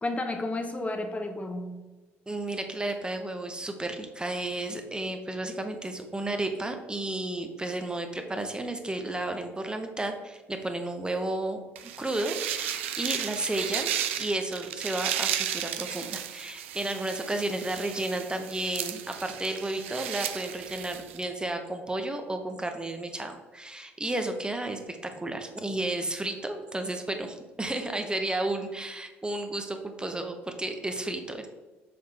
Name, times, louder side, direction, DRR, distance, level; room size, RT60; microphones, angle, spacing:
voice 1, 0.0-1.8, left 2 dB, 20° left, 5 dB, 1.0 m, -32 dB
voice 2, 2.3-31.5, right 2 dB, 15° right, 5 dB, 0.9 m, -32 dB
sound 1, 11.8-21.2, right 10 dB, 80° right, 0.4 m, -34 dB
6.9 x 3.5 x 4.3 m, 1.3 s
figure-of-eight pair, 55°, 7 cm